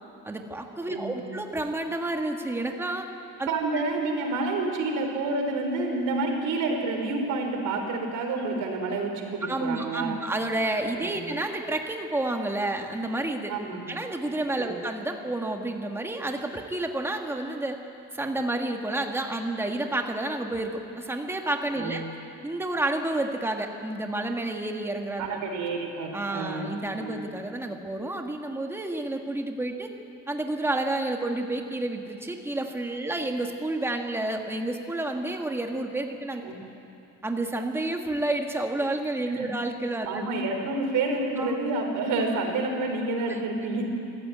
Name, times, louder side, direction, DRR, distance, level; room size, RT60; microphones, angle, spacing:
voice 1, 0.2-3.1 3.4-3.5 9.5-13.5 13.9-17.8 18.1-22.0 22.4-25.4 26.1-29.9 30.3-36.4 37.2-40.2 41.4-41.5 43.3-43.4, right 2 dB, 10° right, 3 dB, 1.5 m, -30 dB
voice 2, 0.9-1.2 3.5-10.2 10.9-11.3 13.5-14.0 14.6-14.7 21.7-22.1 25.2-27.3 36.4-36.6 39.3-39.5 40.1-43.8, right 3 dB, 90° right, 3 dB, 4.4 m, -29 dB
25.0 x 15.0 x 9.5 m, 2.7 s
cardioid pair, 180°, 30 cm